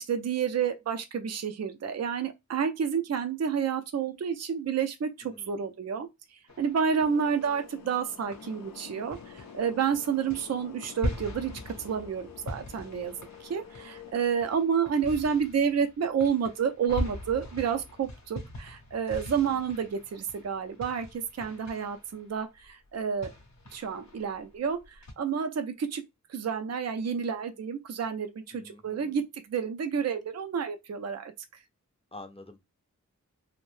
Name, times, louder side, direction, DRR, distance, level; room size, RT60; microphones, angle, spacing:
voice 1, 0.0-13.2 13.4-23.3 23.7-26.0 26.3-29.2 29.5-31.3, right 7 dB, 55° right, 0.4 m, -30 dB
voice 2, 5.2-5.6 19.3-19.6 28.5-29.2 32.1-32.6, left 2 dB, 20° left, 0.5 m, -49 dB
sound 1, 6.5-7.9 8.3-25.1, left 1 dB, 60° left, 0.7 m, -42 dB
sound 2, 7.0-14.1, left 7 dB, 90° left, 0.5 m, -48 dB
2.6 x 2.1 x 3.1 m
wide cardioid pair, 65°, 32 cm